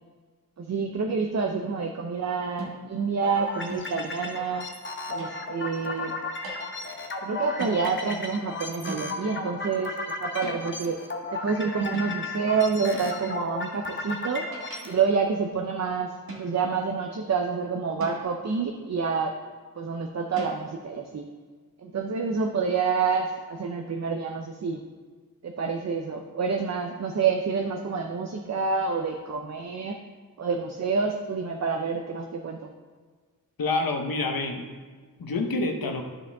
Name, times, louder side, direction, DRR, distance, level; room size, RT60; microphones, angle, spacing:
voice 1, 0.6-4.7 5.1-6.2 7.2-9.9 10.2-11.0 11.3-14.5 14.8-16.1 16.4-19.3 19.8-21.3 21.8-24.8 25.4-30.0 30.4-32.6, right 5 dB, 50° right, 4 dB, 0.6 m, -28 dB
sound 1, 2.6-3.0 3.7-4.1 5.2-5.6 6.4-6.7 7.6-7.9 8.9-9.3 10.4-10.8 11.9-12.3 12.9-13.3 14.2-15.1 16.3-16.8 18.0-18.5 20.4-20.6, right 1 dB, 85° right, 1.7 m, -40 dB
sound 2, 3.2-15.0, left 3 dB, 35° left, 0.9 m, -35 dB
voice 2, 33.6-34.6 35.2-36.0, left 3 dB, 75° left, 3 dB, 1.0 m, -27 dB
12.5 x 4.9 x 3.4 m, 1.5 s
wide cardioid pair, 95°, 35 cm